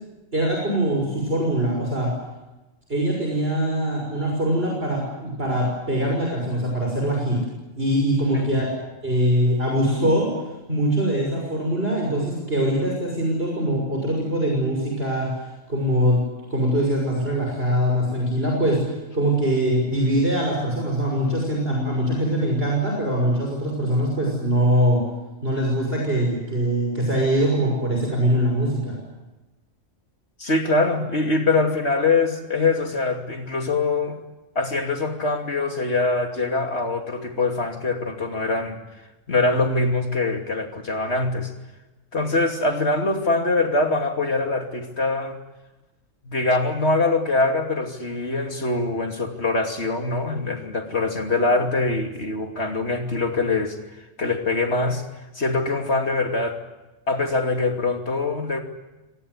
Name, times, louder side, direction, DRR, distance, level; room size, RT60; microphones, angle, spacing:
voice 1, 0.3-2.1 2.9-7.4 7.7-8.7 9.0-10.3 10.7-15.3 15.7-16.2 16.5-18.8 19.1-25.0 25.4-28.9, right 1 dB, 50° right, -1 dB, 6.5 m, -22 dB
voice 2, 30.4-34.2 34.5-38.8 39.3-41.5 42.1-45.4 46.2-53.8 54.2-55.0 55.3-56.6 57.1-58.6, left 3 dB, 55° left, 4 dB, 3.0 m, -23 dB
26.0 x 19.0 x 9.7 m, 1.1 s
omnidirectional pair, 1.3 m